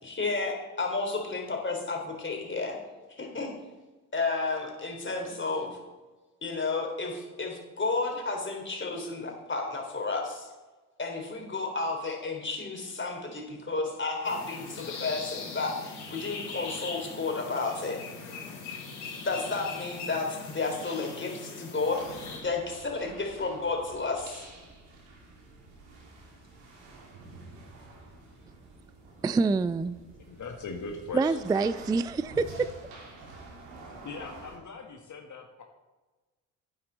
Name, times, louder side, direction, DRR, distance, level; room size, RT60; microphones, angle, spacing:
voice 1, 0.0-2.8 3.1-3.5 4.1-5.8 6.4-10.5 11.0-18.0 19.2-22.0 22.4-24.5, left 3 dB, 25° left, 3.6 m, -32 dB
sound 1, 14.2-22.4, left 4 dB, 65° left, 4.2 m, -41 dB
sound 2, 21.9-34.6, right 3 dB, 65° right, 2.9 m, -48 dB
voice 2, 29.2-30.0 31.1-32.7, right 4 dB, 10° right, 0.3 m, -26 dB
voice 3, 30.3-31.4 34.0-35.6, left 4 dB, 40° left, 1.7 m, -40 dB
13.0 x 9.6 x 4.0 m
hypercardioid pair, 50°, 46 cm